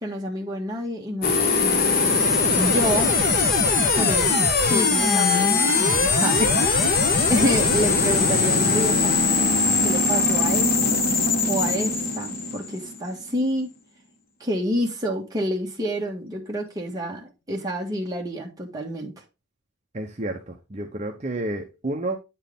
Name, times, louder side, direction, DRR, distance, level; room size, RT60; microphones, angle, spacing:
voice 1, 0.0-2.1 2.5-3.1 3.9-4.3 4.6-6.6 6.9-7.0 7.3-9.2 9.8-11.1 11.5-13.7 14.4-19.1, equal, 15° right, 1.6 m, -28 dB
sound 1, 1.2-13.2, left 4 dB, 45° left, 1.1 m, -21 dB
voice 2, 6.8-7.1 19.9-20.4 20.7-22.2, right 1 dB, 35° right, 0.8 m, -29 dB
9.1 x 4.6 x 3.6 m
head